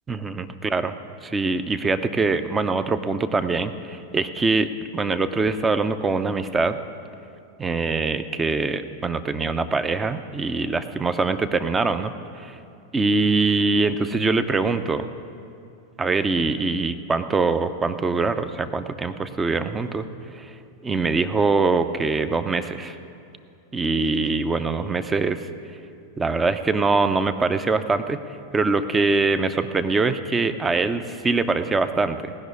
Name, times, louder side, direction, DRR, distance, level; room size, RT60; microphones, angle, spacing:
voice 1, 0.1-0.9 1.2-6.8 7.6-12.6 12.9-15.1 16.0-20.1 20.3-20.5 20.8-23.0 23.7-25.4 26.2-28.2 28.5-32.3, right 3 dB, 15° right, 11 dB, 0.6 m, -23 dB
18.0 x 6.3 x 9.5 m, 2.5 s
figure-of-eight pair, 90°, 0 cm